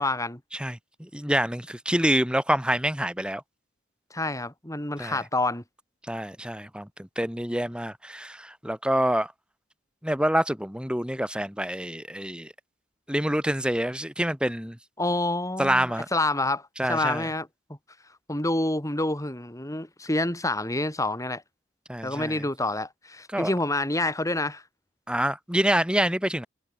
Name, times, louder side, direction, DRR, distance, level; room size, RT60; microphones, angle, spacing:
voice 1, 0.0-0.4 4.1-5.6 15.0-17.5 18.3-21.4 22.0-24.6, left 2 dB, 15° left, 4.4 m, -28 dB
voice 2, 0.5-3.4 5.0-5.2 6.1-9.3 10.0-12.5 13.1-14.8 15.6-16.1 16.8-17.3 21.9-22.4 23.3-23.5 25.1-26.5, right 1 dB, 5° right, 4.1 m, -27 dB
head